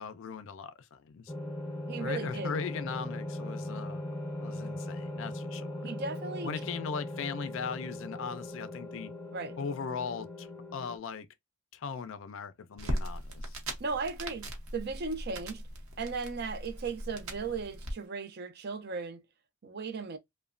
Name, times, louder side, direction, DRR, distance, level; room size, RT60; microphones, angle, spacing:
voice 1, 0.0-1.3 2.0-4.0 4.4-5.8 6.4-9.1 9.6-10.5 10.7-11.3 11.7-13.6, left 6 dB, 60° left, 0.4 m, -39 dB
sound 1, 1.3-11.0, left 1 dB, 15° left, 0.6 m, -39 dB
voice 2, 1.9-2.5 5.8-6.5 9.3-9.6 13.8-15.6 16.0-19.2 19.6-20.2, right 4 dB, 45° right, 0.5 m, -36 dB
sound 2, 12.8-17.9, equal, 65° right, 0.9 m, -39 dB
3.0 x 2.1 x 2.4 m
head